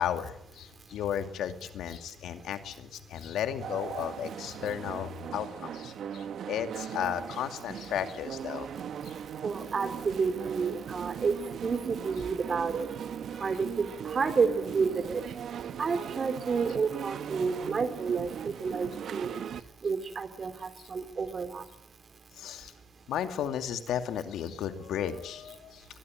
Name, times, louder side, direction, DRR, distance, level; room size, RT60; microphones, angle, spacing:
voice 1, 0.0-8.7 9.0-9.2 20.8-20.9 22.4-22.7 23.1-25.9, left 9 dB, 80° left, 7 dB, 2.5 m, -34 dB
sound 1, 3.6-19.6, right 8 dB, 65° right, 1.4 m, -39 dB
voice 2, 9.4-11.3 11.6-12.9 13.4-15.2 15.8-19.3 19.8-21.6, right 5 dB, 40° right, 11 dB, 3.5 m, -30 dB
23.0 x 21.5 x 9.1 m, 0.78 s
cardioid pair, 90°, 0 cm